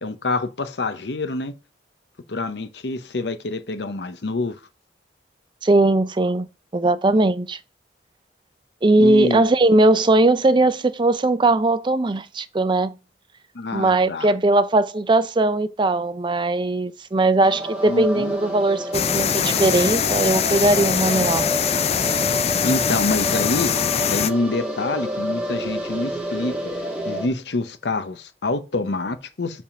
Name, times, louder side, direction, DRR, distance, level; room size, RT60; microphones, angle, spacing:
voice 1, 0.0-1.5 2.3-4.6 9.0-9.5 13.5-14.3 17.9-18.3 22.6-23.7 24.1-26.5 27.1-29.6, left 2 dB, 70° left, 0.8 m, -26 dB
voice 2, 5.6-6.5 6.7-7.6 8.8-13.0 13.7-21.5, right 2 dB, 25° right, 0.4 m, -19 dB
sound 1, 17.4-27.3, equal, 5° right, 1.8 m, -29 dB
sound 2, 18.9-24.3, left 7 dB, 35° left, 0.4 m, -22 dB
7.3 x 3.6 x 5.7 m
head